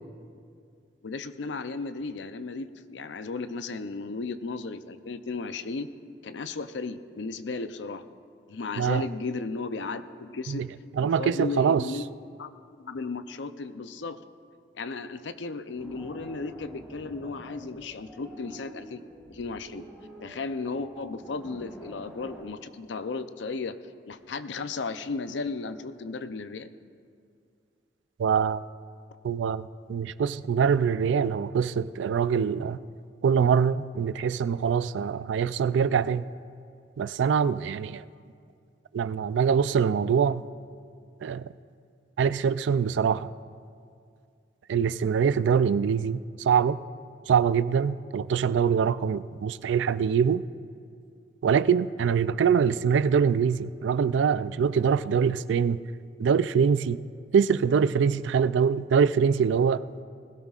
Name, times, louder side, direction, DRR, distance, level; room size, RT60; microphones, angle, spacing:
voice 1, 1.0-5.9 6.2-8.0 8.5-10.7 11.0-12.0 12.4-12.5 12.8-14.2 14.7-19.0 19.3-19.9 20.2-23.8 24.1-26.7, left 4 dB, 80° left, 11 dB, 0.6 m, -35 dB
voice 2, 11.0-11.9 28.2-28.6 29.2-32.8 33.2-36.3 37.0-38.0 38.9-40.4 41.2-41.5 42.2-43.3 44.7-46.8 47.3-50.4 51.4-55.8 56.2-57.0 57.3-59.8, right 7 dB, 85° right, 15 dB, 0.3 m, -24 dB
sound 1, 15.8-22.4, equal, ahead, 3.9 m, -47 dB
20.5 x 16.0 x 2.4 m, 2.3 s
head